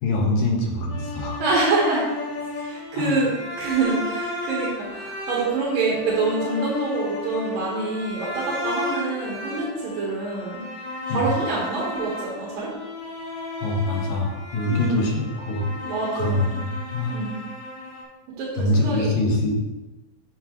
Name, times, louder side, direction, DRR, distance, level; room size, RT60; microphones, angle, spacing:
voice 1, 0.0-1.4 2.9-3.1 11.1-11.2 13.6-15.7 16.2-17.1 18.6-19.5, left 2 dB, 80° left, 0 dB, 3.1 m, -24 dB
sound 1, 0.9-18.0, left 2 dB, 60° left, 2.8 m, -33 dB
voice 2, 1.4-2.0 2.6-10.6 11.1-12.7 14.7-15.2 15.8-16.6 17.1-17.4 18.4-19.2, right 3 dB, 80° right, -4 dB, 3.1 m, -26 dB
9.6 x 7.3 x 3.1 m, 1.1 s
omnidirectional pair, 3.9 m